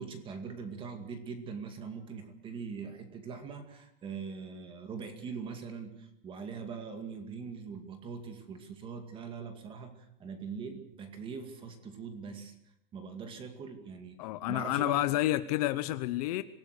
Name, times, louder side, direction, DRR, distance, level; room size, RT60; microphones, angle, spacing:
voice 1, 0.0-12.5 12.9-15.1, right 5 dB, 15° right, 7 dB, 2.2 m, -42 dB
voice 2, 14.2-16.4, left 15 dB, 40° left, 12 dB, 0.8 m, -29 dB
26.0 x 18.0 x 6.6 m, 0.77 s
supercardioid pair, 175°, 30 cm